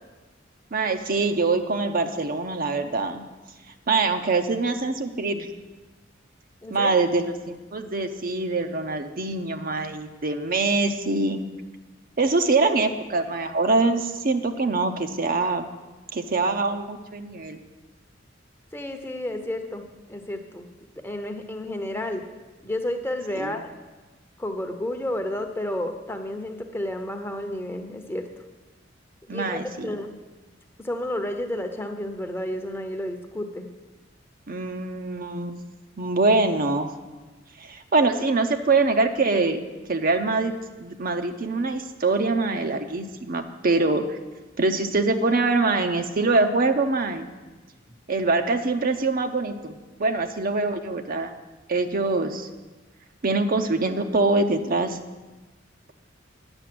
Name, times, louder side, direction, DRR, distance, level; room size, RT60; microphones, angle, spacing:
voice 1, 0.7-3.2 3.9-5.5 6.7-11.4 12.2-15.7 16.1-17.6 23.4-23.6 29.3-30.0 34.5-35.6 36.0-36.9 37.6-39.6 39.9-40.5 40.8-44.2 44.6-47.3 48.1-51.3 51.7-52.5 53.2-55.0, right 3 dB, 50° right, 6 dB, 0.7 m, -24 dB
voice 2, 6.6-7.1 18.7-20.7 20.9-22.3 22.6-23.7 24.4-28.3 29.3-30.1 30.8-33.7, left 1 dB, 10° left, 5 dB, 0.8 m, -31 dB
9.9 x 7.0 x 7.7 m, 1.2 s
head